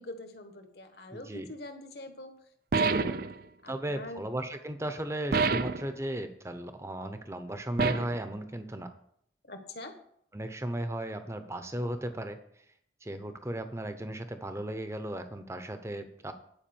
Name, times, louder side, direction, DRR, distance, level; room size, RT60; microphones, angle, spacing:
voice 1, 0.0-2.3 2.7-3.3 3.6-4.2 9.4-9.9, left 1 dB, 60° left, 6 dB, 1.4 m, -44 dB
voice 2, 1.1-1.5 3.7-8.9 10.3-12.4 13.0-16.3, right 1 dB, 15° right, 8 dB, 0.7 m, -36 dB
sound 1, 2.7-3.4 5.3-5.9 7.8-8.2, right 4 dB, 50° right, 0.4 m, -27 dB
10.5 x 5.1 x 7.0 m, 0.67 s
head